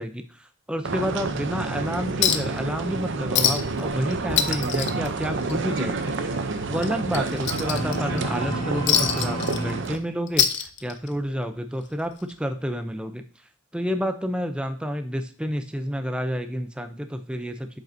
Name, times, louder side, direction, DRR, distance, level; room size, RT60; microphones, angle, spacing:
voice 1, 0.0-6.1 6.7-13.2 13.7-17.8, equal, 5° right, 8 dB, 0.5 m, -29 dB
sound 1, 0.8-10.0, right 3 dB, 60° right, 0.6 m, -29 dB
Chink clink, 2.2-2.6 2.9-3.0 3.3-3.8 4.1-5.8 6.1-6.3 6.8-8.2 8.9-10.0 10.3-11.2 12.3-12.4, left 9 dB, 55° left, 0.6 m, -24 dB
sound 2, 3.6-9.8, equal, 30° left, 1.4 m, -35 dB
7.5 x 5.2 x 2.7 m, 0.41 s
head